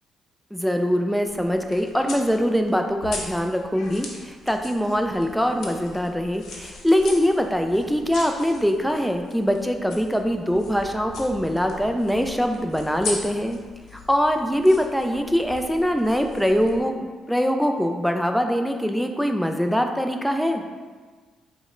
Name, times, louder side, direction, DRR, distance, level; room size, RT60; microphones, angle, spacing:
voice 1, 0.5-13.6 14.1-20.6, equal, ahead, 4 dB, 0.3 m, -23 dB
sound 1, 1.2-16.8, left 3 dB, 65° left, 0.8 m, -40 dB
5.0 x 2.1 x 3.7 m, 1.4 s
cardioid pair, 90°, 0 cm